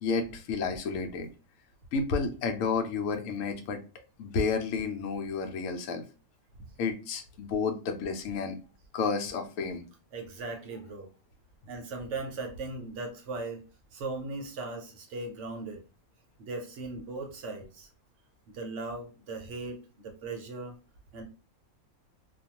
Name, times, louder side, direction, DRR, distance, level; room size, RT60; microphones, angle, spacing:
voice 1, 0.0-1.3 1.9-3.8 4.2-6.0 6.8-8.6 8.9-9.9, left 4 dB, 70° left, 5 dB, 0.9 m, -31 dB
voice 2, 10.1-11.1 11.7-13.6 13.9-15.8 16.4-17.9 18.5-19.8 20.0-20.8 21.1-21.2, right 3 dB, 60° right, 3 dB, 0.9 m, -38 dB
2.4 x 2.3 x 2.8 m, 0.33 s
omnidirectional pair, 1.5 m